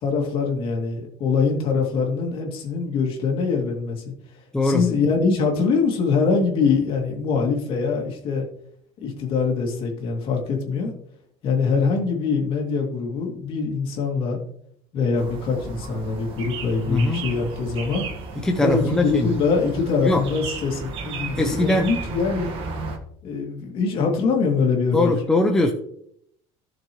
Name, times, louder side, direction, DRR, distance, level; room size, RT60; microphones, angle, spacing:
voice 1, 0.0-4.0 4.6-8.4 9.0-10.9 11.4-14.4 14.9-18.1 18.6-22.5 23.2-25.1, left 5 dB, 40° left, 0 dB, 2.6 m, -23 dB
sound 1, 15.2-23.0, right 4 dB, 40° right, 1.6 m, -34 dB
voice 2, 16.9-17.3 18.4-19.4 20.0-20.3 21.3-22.0 24.9-25.7, left 2 dB, 5° left, 3 dB, 0.6 m, -21 dB
16.0 x 6.6 x 3.1 m, 0.70 s
cardioid pair, 180°, 14 cm